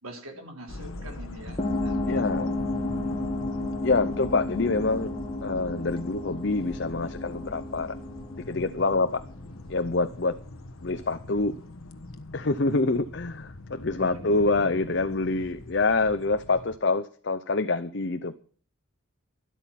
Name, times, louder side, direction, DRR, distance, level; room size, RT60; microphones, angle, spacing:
voice 1, 0.0-2.3 14.0-14.7, right 1 dB, 85° right, 3 dB, 3.8 m, -44 dB
sound 1, 0.7-16.8, left 2 dB, 80° left, 1.2 m, -42 dB
sound 2, 1.6-9.7, left 2 dB, 25° left, 1.7 m, -32 dB
voice 2, 2.1-2.5 3.8-5.1 5.4-8.0 8.4-9.2 9.7-10.3 10.8-11.5 12.3-18.4, left 3 dB, 55° left, 9 dB, 0.7 m, -26 dB
12.5 x 12.0 x 5.9 m, 0.43 s
head